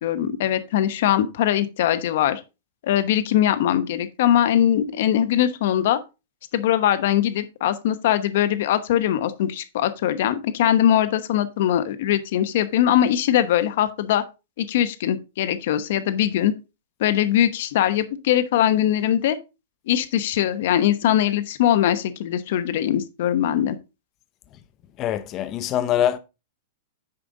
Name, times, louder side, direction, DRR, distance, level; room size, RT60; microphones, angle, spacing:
voice 1, 0.0-2.4 2.8-6.0 6.5-14.2 14.6-16.5 17.0-19.4 19.9-23.8, left 11 dB, 60° left, 1.0 m, -21 dB
voice 2, 25.0-26.2, left 11 dB, 30° left, 0.7 m, -23 dB
9.8 x 5.2 x 3.9 m
hypercardioid pair, 150°, 0 cm